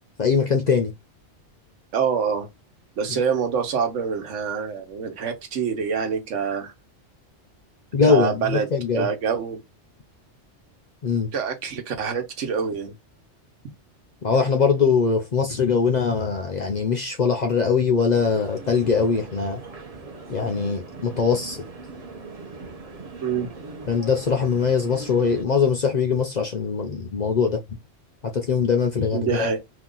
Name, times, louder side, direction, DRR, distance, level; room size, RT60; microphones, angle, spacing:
voice 1, 0.2-0.9 7.9-9.1 11.0-11.3 14.2-19.6 20.3-21.6 23.9-27.6 28.3-29.5, left 5 dB, 50° left, 0.5 m, -22 dB
voice 2, 1.9-2.5 3.0-6.7 8.0-8.7 8.9-9.6 11.3-12.9 23.2-23.5 29.1-29.6, right 6 dB, 85° right, 1.2 m, -26 dB
sound 1, 18.1-25.4, right 3 dB, 40° right, 0.7 m, -40 dB
2.8 x 2.4 x 3.7 m
omnidirectional pair, 1.2 m